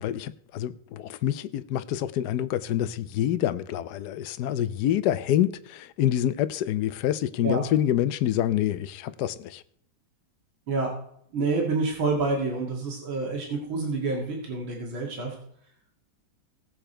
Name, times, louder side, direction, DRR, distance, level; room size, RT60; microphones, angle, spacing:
voice 1, 0.0-9.6, left 11 dB, 65° left, 1.1 m, -27 dB
voice 2, 11.3-15.3, right 3 dB, 85° right, 3.0 m, -28 dB
18.5 x 6.9 x 4.4 m
omnidirectional pair, 2.1 m